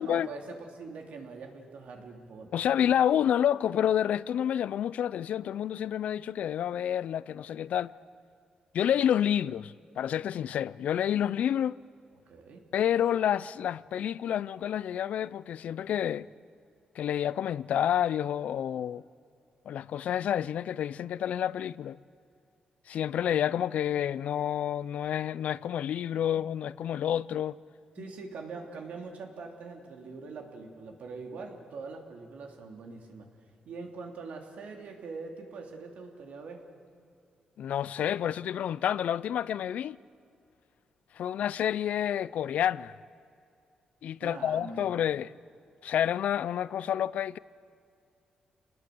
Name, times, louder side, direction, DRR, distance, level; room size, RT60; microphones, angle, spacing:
voice 1, 0.0-2.7 12.3-12.7 27.9-33.3 33.6-36.7 44.2-44.9, right 4 dB, 70° right, 3.2 m, -43 dB
voice 2, 2.5-7.9 8.7-11.8 12.7-16.3 17.0-19.0 19.7-22.0 22.9-27.6 37.6-40.0 41.2-42.9 44.0-45.3 45.8-47.4, left 10 dB, 75° left, 0.5 m, -29 dB
28.5 x 20.0 x 7.8 m
wide cardioid pair, 135°, 2 cm